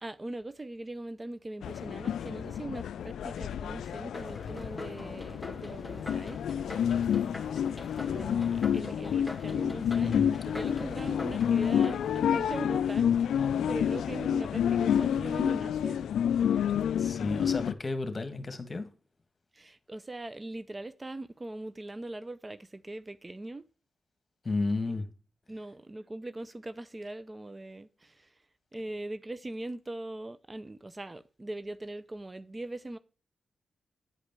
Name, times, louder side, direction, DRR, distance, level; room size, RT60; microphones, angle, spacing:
voice 1, 0.0-6.4 6.9-7.1 8.1-10.2 10.4-16.0 19.5-23.7 24.9-25.0 25.5-28.4 28.7-33.0, right 1 dB, 30° right, 0.6 m, -41 dB
sound 1, 1.6-17.7, left 8 dB, 80° left, 0.3 m, -29 dB
sound 2, 4.1-13.2, left 2 dB, 15° left, 2.2 m, -45 dB
voice 2, 10.0-10.3 17.0-18.9 24.4-25.1, left 3 dB, 40° left, 1.6 m, -32 dB
9.6 x 5.0 x 5.4 m
supercardioid pair, 40°, 0 cm